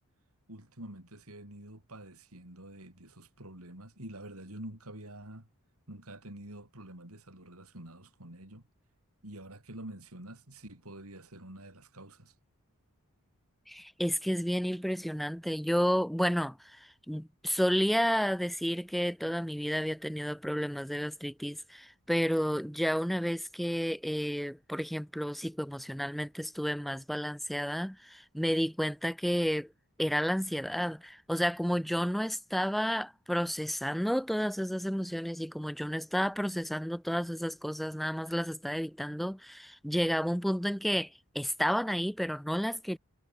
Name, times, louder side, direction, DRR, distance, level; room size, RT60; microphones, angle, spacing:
voice 1, 0.5-5.5 5.9-8.6 9.2-12.3, right 1 dB, 80° right, 6.1 m, -47 dB
voice 2, 13.7-29.7 30.0-43.0, equal, ahead, 0.4 m, -31 dB
head